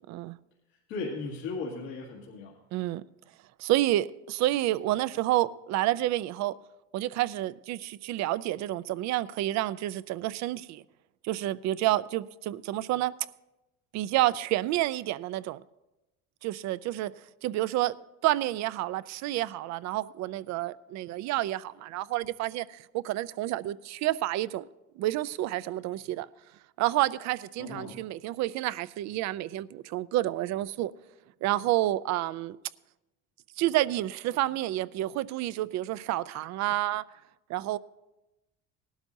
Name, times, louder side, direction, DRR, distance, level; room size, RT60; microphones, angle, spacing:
voice 1, 0.9-2.6 27.6-28.0, left 3 dB, 90° left, 2.1 m, -36 dB
voice 2, 2.7-3.0 3.6-6.6 6.9-10.8 11.2-13.1 13.9-15.6 16.4-17.1 17.4-17.9 18.2-24.7 25.0-26.3 26.8-30.9 31.4-32.6 33.6-37.0 37.5-37.8, right 15 dB, 65° right, 0.5 m, -29 dB
18.5 x 12.0 x 2.7 m
supercardioid pair, 100°, 31 cm